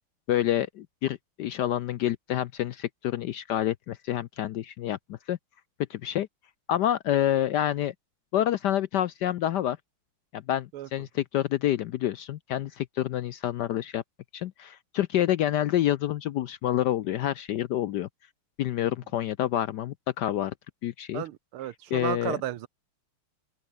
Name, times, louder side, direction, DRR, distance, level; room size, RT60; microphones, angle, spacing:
voice 1, 0.3-5.4 5.9-6.3 6.7-7.9 8.3-9.8 10.3-14.0 14.3-18.1 18.6-20.5 20.8-21.2 21.9-22.4, left 12 dB, 75° left, 1.0 m, -28 dB
voice 2, 21.1-22.7, right 13 dB, 85° right, 1.8 m, -33 dB
open air
omnidirectional pair, 2.3 m